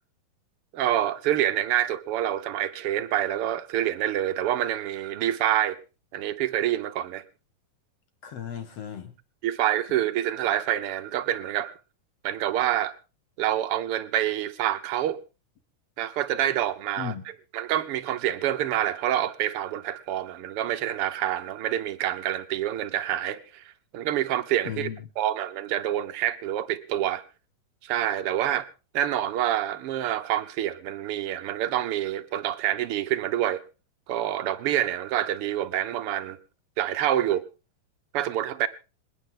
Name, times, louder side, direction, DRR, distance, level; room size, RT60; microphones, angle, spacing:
voice 1, 0.7-5.8 6.1-7.2 9.4-11.7 12.2-12.9 13.4-15.2 16.0-17.1 17.5-23.6 23.9-24.9 25.2-27.2 27.8-28.7 28.9-33.6 34.1-36.4 36.8-37.5 38.1-38.7, right 11 dB, 85° right, 1.2 m, -27 dB
voice 2, 8.2-9.1 17.0-17.2 24.7-25.0, left 9 dB, 55° left, 2.5 m, -35 dB
27.5 x 9.5 x 3.8 m
omnidirectional pair, 3.8 m